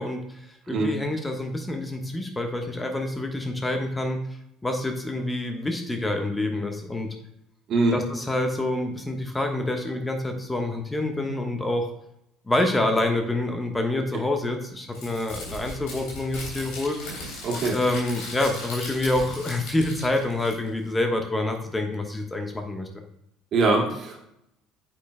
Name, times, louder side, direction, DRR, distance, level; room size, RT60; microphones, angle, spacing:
voice 1, 0.0-4.2 4.6-7.1 7.9-11.9 12.5-17.4 17.7-23.0, left 2 dB, 15° left, 4 dB, 1.2 m, -27 dB
voice 2, 7.7-8.0 17.4-17.8 23.5-24.2, right 3 dB, 50° right, 0 dB, 2.2 m, -22 dB
Crumpling crinkling, 14.9-20.9, left 2 dB, 65° left, 3.0 m, -38 dB
8.9 x 7.4 x 2.2 m, 0.81 s
hypercardioid pair, 60°, 0 cm